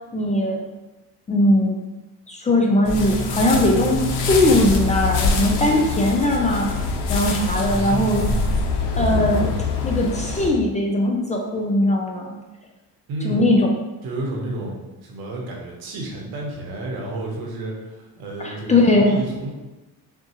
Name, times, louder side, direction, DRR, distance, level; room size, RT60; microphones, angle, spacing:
voice 1, 0.1-0.6 1.3-1.8 2.3-6.7 7.1-8.3 9.0-9.5 9.8-12.4 13.2-13.7 18.4-19.2, left 1 dB, 20° left, 0 dB, 0.4 m, -19 dB
sound 1, 2.8-10.5, left 3 dB, 90° left, 0.7 m, -24 dB
voice 2, 7.6-8.5 13.1-13.5 14.0-14.8 15.0-19.5, right 2 dB, 70° right, -1 dB, 1.1 m, -31 dB
5.8 x 2.4 x 2.9 m, 1.1 s
cardioid pair, 130°, 37 cm